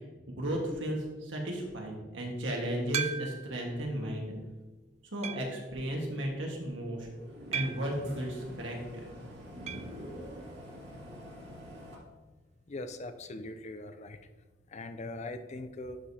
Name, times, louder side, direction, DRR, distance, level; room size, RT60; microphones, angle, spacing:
voice 1, 0.3-4.3 5.1-7.1 7.5-9.1, right 1 dB, 85° right, 0 dB, 1.5 m, -34 dB
sound 1, 2.9-3.6 4.2-4.3 5.2-5.6 7.5-8.0 9.7-10.0 10.2-10.3 10.6-10.7 12.7-12.8, right 7 dB, 35° right, 0.3 m, -36 dB
sound 2, 6.9-12.0, equal, 60° right, 1.9 m, -46 dB
voice 2, 12.7-14.2 14.7-16.0, left 2 dB, 40° left, 9 dB, 0.4 m, -41 dB
11.5 x 4.9 x 2.8 m, 1.3 s
head